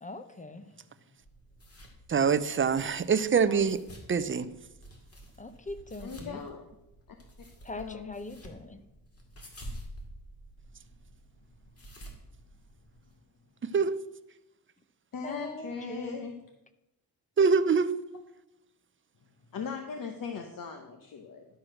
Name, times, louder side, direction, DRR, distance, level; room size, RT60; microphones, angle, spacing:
voice 1, 0.0-0.7 5.4-6.4 7.6-8.8 15.2-16.4, left 2 dB, 20° left, 10 dB, 0.8 m, -42 dB
sound 1, 1.2-13.1, equal, 40° left, 2.2 m, -49 dB
voice 2, 2.1-3.8 4.1-4.5 13.7-14.0 17.4-17.9, right 5 dB, 35° right, 14 dB, 0.5 m, -24 dB
voice 3, 6.0-6.6 7.1-7.2 7.7-8.1 15.1-16.3 19.5-21.5, left 5 dB, 60° left, 4 dB, 1.0 m, -38 dB
11.5 x 4.7 x 6.3 m, 0.91 s
wide cardioid pair, 110°, 37 cm